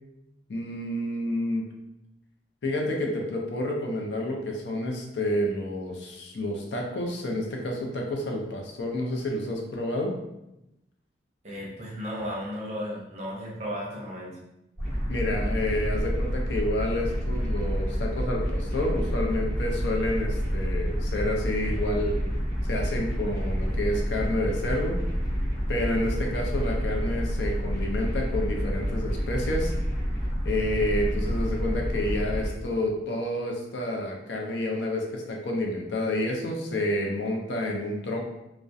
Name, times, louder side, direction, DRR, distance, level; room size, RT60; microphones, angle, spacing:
voice 1, 0.5-1.6 2.6-10.1 15.1-22.3 22.7-25.0 25.7-29.7 30.4-38.2, left 1 dB, 75° left, 0 dB, 0.5 m, -29 dB
voice 2, 11.4-14.4, equal, 35° right, -4 dB, 0.6 m, -34 dB
sound 1, 14.8-32.5, equal, 45° left, 1.2 m, -28 dB
2.3 x 2.1 x 2.6 m, 0.89 s
head